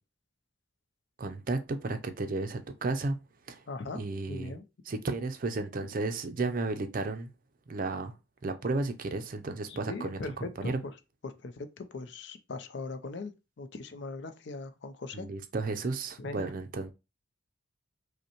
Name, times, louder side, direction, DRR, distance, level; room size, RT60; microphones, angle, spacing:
voice 1, 1.2-3.1 3.5-3.6 3.9-4.6 4.9-7.3 7.7-8.1 8.4-10.8 15.1-16.9, right 3 dB, 45° right, 0.4 m, -33 dB
voice 2, 3.7-4.0 4.3-4.6 9.7-10.9 11.2-13.3 13.6-15.3 16.2-16.5, left 3 dB, 60° left, 0.5 m, -40 dB
5.2 x 2.1 x 2.9 m
head